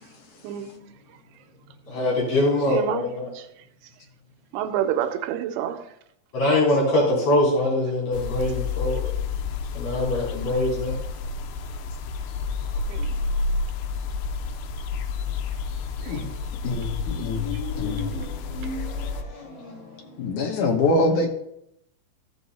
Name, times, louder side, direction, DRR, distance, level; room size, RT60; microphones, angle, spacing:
voice 1, 1.9-3.3 6.3-9.1 9.7-10.9 17.2-19.8, left 1 dB, 40° left, -6 dB, 4.4 m, -24 dB
voice 2, 2.7-3.0 3.4-3.5 4.5-5.8 12.9-13.1 16.1-16.2, right 10 dB, 90° right, 9 dB, 2.6 m, -27 dB
sound 1, 8.1-19.2, left 4 dB, 85° left, 2.6 m, -30 dB
voice 3, 16.6-17.5 17.8-18.1 20.2-21.3, left 2 dB, 65° left, 2 dB, 2.3 m, -24 dB
14.5 x 6.1 x 4.1 m, 0.77 s
omnidirectional pair, 4.4 m